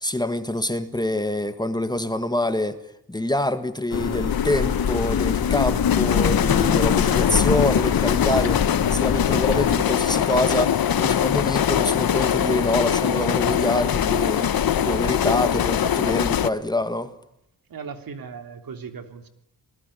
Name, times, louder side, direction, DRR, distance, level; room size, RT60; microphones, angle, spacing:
voice 1, 0.0-2.8 3.1-17.1, left 1 dB, 10° left, 10 dB, 1.7 m, -26 dB
sound 1, 3.9-9.8, left 8 dB, 80° left, 3.0 m, -25 dB
sound 2, 4.3-16.5, left 9 dB, 65° left, 1.3 m, -22 dB
voice 2, 17.7-19.3, right 6 dB, 65° right, 8 dB, 3.3 m, -37 dB
28.5 x 19.5 x 10.0 m, 0.80 s
wide cardioid pair, 125°, 38 cm